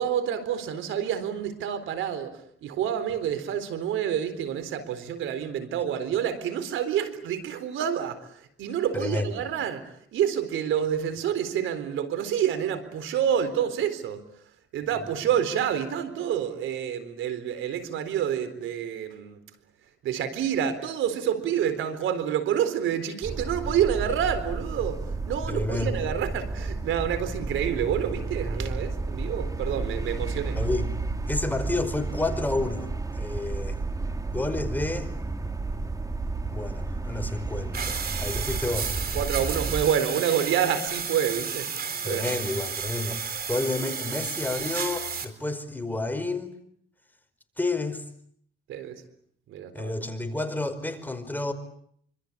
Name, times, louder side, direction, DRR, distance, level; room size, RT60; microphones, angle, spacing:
voice 1, 0.0-14.2 14.7-19.4 20.0-30.6 39.1-42.4 48.7-49.0 49.5-49.9, right 9 dB, 85° right, 12 dB, 4.0 m, -28 dB
voice 2, 8.9-9.4 25.5-26.0 30.5-30.9 31.3-33.8 34.3-35.1 36.5-39.0 42.0-46.6 47.6-48.0 49.7-51.5, left 2 dB, 10° left, 8 dB, 4.9 m, -30 dB
sound 1, 23.2-39.9, right 3 dB, 15° right, 1.9 m, -32 dB
sound 2, 37.7-45.2, right 6 dB, 50° right, 4.3 m, -32 dB
27.0 x 25.5 x 8.4 m, 0.67 s
cardioid pair, 90°, 20 cm